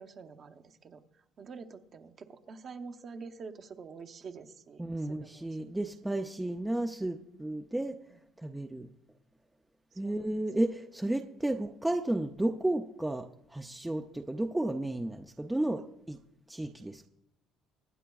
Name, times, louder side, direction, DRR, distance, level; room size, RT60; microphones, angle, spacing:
voice 1, 0.0-5.7 6.0-6.3 7.7-8.2 9.9-10.4 15.6-15.9, right 5 dB, 35° right, 0.8 m, -48 dB
voice 2, 4.8-8.0 8.4-8.9 10.0-16.2 16.5-17.1, right 1 dB, 5° right, 0.4 m, -33 dB
24.0 x 9.8 x 2.3 m
cardioid pair, 150°, 0 cm